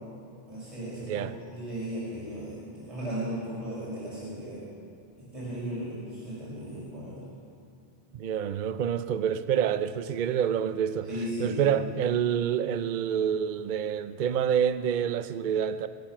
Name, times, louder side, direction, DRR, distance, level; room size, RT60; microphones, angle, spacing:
voice 1, 0.5-4.6 5.2-7.2 11.1-11.6, right 1 dB, 30° right, 5.0 m, -36 dB
voice 2, 8.1-11.1 11.4-15.9, right 8 dB, 55° right, 0.6 m, -27 dB
21.5 x 8.8 x 6.0 m
omnidirectional pair, 1.1 m